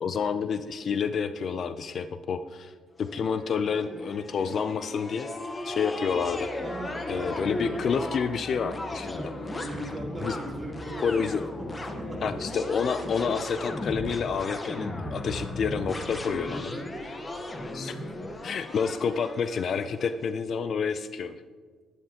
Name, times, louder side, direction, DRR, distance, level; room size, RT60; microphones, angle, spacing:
voice 1, 0.0-2.7 3.0-5.3 5.6-6.5 7.1-9.2 10.2-10.3 11.0-11.4 12.2-16.7 17.7-18.0 18.4-21.4, left 6 dB, 55° left, 11 dB, 0.5 m, -29 dB
sound 1, 3.0-20.1, left 1 dB, 25° left, 1.2 m, -36 dB
voice 2, 6.6-7.9 9.2-11.3 11.6-12.3 16.7-17.2 17.8-18.0, right 1 dB, 10° right, -4 dB, 3.1 m, -39 dB
11.5 x 11.0 x 2.9 m, 1.5 s
cardioid pair, 90°, 0 cm